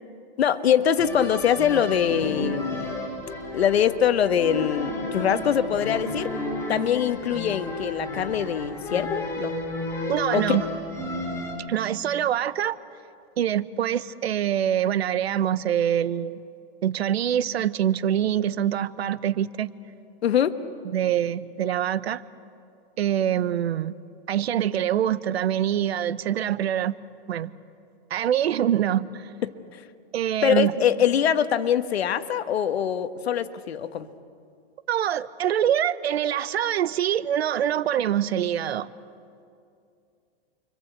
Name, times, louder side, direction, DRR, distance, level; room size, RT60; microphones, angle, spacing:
voice 1, 0.4-2.9 3.5-6.3 6.7-9.5 10.3-10.6 20.2-20.6 29.4-29.5 30.4-34.1, left 9 dB, 90° left, 10 dB, 1.5 m, -23 dB
sound 1, 1.0-11.6, left 1 dB, 10° left, 4.4 m, -32 dB
voice 2, 10.1-10.6 11.7-12.8 13.4-16.4 16.8-19.7 20.9-22.2 23.0-24.0 24.3-27.0 27.3-27.5 28.1-29.3 30.1-30.7 34.9-38.9, right 10 dB, 85° right, 16 dB, 1.1 m, -24 dB
29.5 x 24.0 x 8.1 m, 2.5 s
hypercardioid pair, 155°, 30 cm